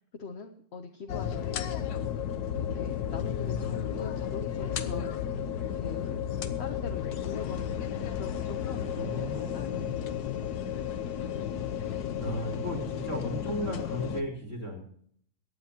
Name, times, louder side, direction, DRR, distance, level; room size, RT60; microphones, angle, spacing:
voice 1, 0.1-1.9 2.7-5.4 5.7-6.2 6.6-10.1, left 5 dB, 50° left, 5 dB, 0.9 m, -42 dB
sound 1, 1.1-14.2, left 9 dB, 65° left, 1.4 m, -33 dB
voice 2, 8.8-9.9 12.2-14.8, equal, 45° right, -3 dB, 4.3 m, -35 dB
23.0 x 10.0 x 2.9 m, 0.62 s
omnidirectional pair, 1.9 m